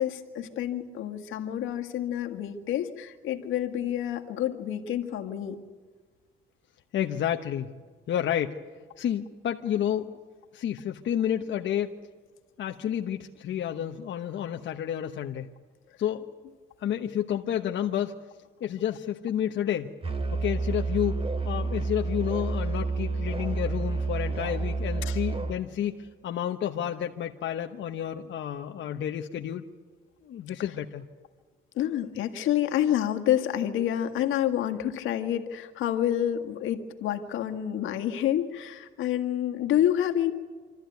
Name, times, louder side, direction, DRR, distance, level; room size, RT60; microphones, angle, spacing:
voice 1, 0.0-5.6 25.0-25.2 31.8-40.3, left 11 dB, 90° left, 5 dB, 1.8 m, -28 dB
voice 2, 6.9-7.7 8.1-8.6 9.0-10.2 10.5-12.0 12.6-15.5 16.0-16.3 16.8-18.2 18.6-19.9 20.3-29.6 30.2-31.1, left 10 dB, 70° left, 3 dB, 1.1 m, -30 dB
Musical instrument, 20.0-25.6, right 3 dB, 30° right, 2.4 m, -29 dB
26.5 x 13.5 x 9.4 m, 1.5 s
cardioid pair, 90°, 20 cm